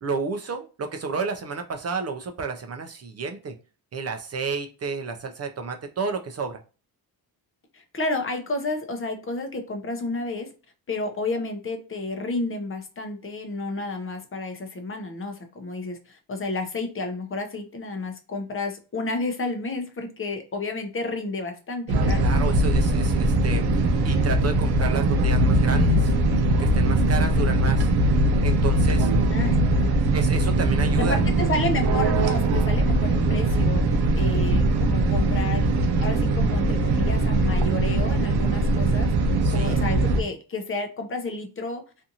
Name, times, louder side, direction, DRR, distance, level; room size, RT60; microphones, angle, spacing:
voice 1, 0.0-3.5 3.9-6.6 22.2-26.1 26.6-27.9 28.4-29.1 30.1-31.2 39.4-39.8, right 4 dB, 40° right, 5 dB, 0.4 m, -31 dB
voice 2, 7.7-10.5 10.9-22.3 29.3-29.9 31.0-39.1 39.5-41.8, left 2 dB, 35° left, 5 dB, 0.6 m, -31 dB
sound 1, 21.9-40.2, right 2 dB, 90° right, 0.6 m, -21 dB
2.6 x 2.4 x 2.7 m, 0.34 s
wide cardioid pair, 130°, 38 cm